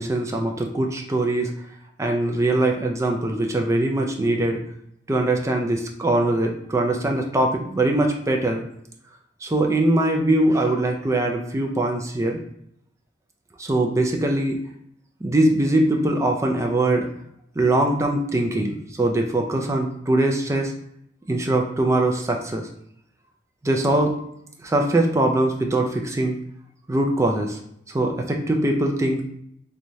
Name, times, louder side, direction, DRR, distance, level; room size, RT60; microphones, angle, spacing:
voice 1, 0.0-1.5 2.0-4.6 5.1-8.6 9.4-12.4 13.6-14.6 15.2-17.1 17.6-20.7 21.3-22.7 23.6-24.2 24.6-26.4 26.9-27.6 27.9-29.2, right 1 dB, 15° right, 2 dB, 0.4 m, -22 dB
3.4 x 3.1 x 2.7 m, 0.71 s
head